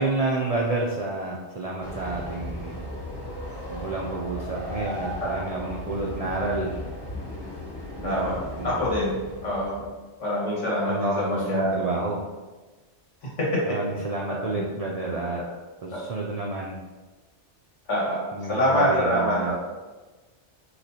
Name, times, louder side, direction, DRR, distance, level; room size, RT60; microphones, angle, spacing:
voice 1, 0.0-2.8 3.7-6.8 8.0-9.1 10.8-12.2 13.7-15.4 15.8-16.7 18.3-19.5, right 2 dB, 65° right, -2 dB, 0.3 m, -29 dB
Train, 1.8-10.0, equal, 25° left, 0.6 m, -36 dB
voice 2, 8.0-8.4 8.6-9.2 9.4-9.8 10.2-11.7 13.4-13.6 14.3-14.6 15.4-15.5 17.9-19.5, left 1 dB, 85° left, -6 dB, 1.8 m, -25 dB
6.0 x 2.9 x 2.8 m, 1.3 s
omnidirectional pair, 1.2 m